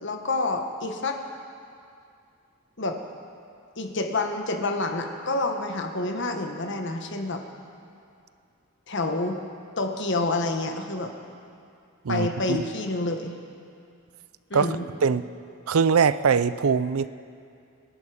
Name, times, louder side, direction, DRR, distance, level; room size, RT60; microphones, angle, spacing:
voice 1, 0.0-1.2 2.8-3.0 3.8-7.4 8.9-9.4 9.8-11.1 12.1-13.4 14.5-14.9, left 2 dB, 60° left, 5 dB, 1.4 m, -28 dB
voice 2, 12.0-12.6 14.5-14.7 15.0-15.2 15.7-17.1, right 6 dB, 90° right, 15 dB, 0.5 m, -22 dB
26.0 x 11.0 x 5.1 m, 2.4 s
head